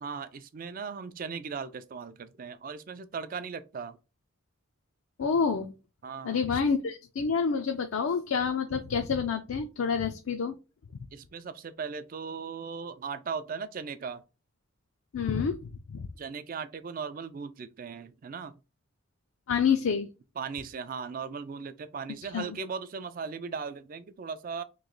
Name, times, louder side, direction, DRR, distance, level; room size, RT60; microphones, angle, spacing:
voice 1, 0.0-4.0 6.0-6.4 11.1-14.2 16.2-18.5 20.4-24.6, right 5 dB, 40° right, 0.3 m, -38 dB
voice 2, 5.2-5.7 6.2-10.6 15.1-16.1 19.5-20.1 22.3-22.6, left 6 dB, 75° left, 0.4 m, -28 dB
3.1 x 2.8 x 3.8 m
head